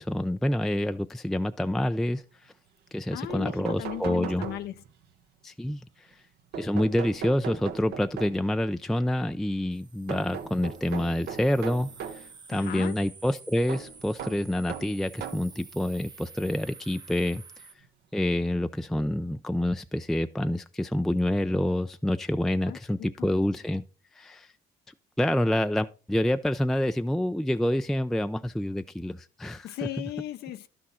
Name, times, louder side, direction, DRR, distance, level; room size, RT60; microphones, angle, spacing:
voice 1, 0.0-2.5 2.9-4.5 5.4-6.1 6.6-17.4 18.1-23.8 24.1-24.5 25.2-29.7, left 1 dB, ahead, 0.3 m, -27 dB
sound 1, 3.0-3.1 3.3-5.0 6.5-8.6 10.1-12.3 13.7-15.6 16.4-16.5 17.8-17.9 18.3-18.4, right 7 dB, 75° right, 1.1 m, -39 dB
voice 2, 3.1-4.8 12.5-13.0 22.7-23.3 29.6-30.7, left 13 dB, 70° left, 0.6 m, -37 dB
sound 2, 9.7-17.7, right 4 dB, 25° right, 0.8 m, -50 dB
11.0 x 6.1 x 4.2 m
cardioid pair, 110°, 17 cm